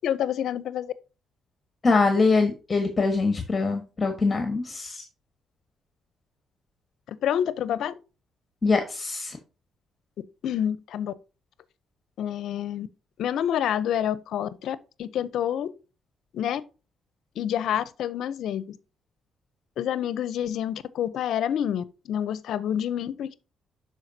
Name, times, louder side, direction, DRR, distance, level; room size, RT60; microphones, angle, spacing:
voice 1, 0.0-0.9 7.2-7.9 10.4-11.1 12.2-12.9 13.2-15.7 16.3-16.6 17.4-18.8 19.8-23.4, left 10 dB, 75° left, 0.6 m, -28 dB
voice 2, 1.8-5.0 8.6-9.4, left 3 dB, 30° left, 1.3 m, -23 dB
11.5 x 4.8 x 2.7 m
cardioid pair, 90°, 0 cm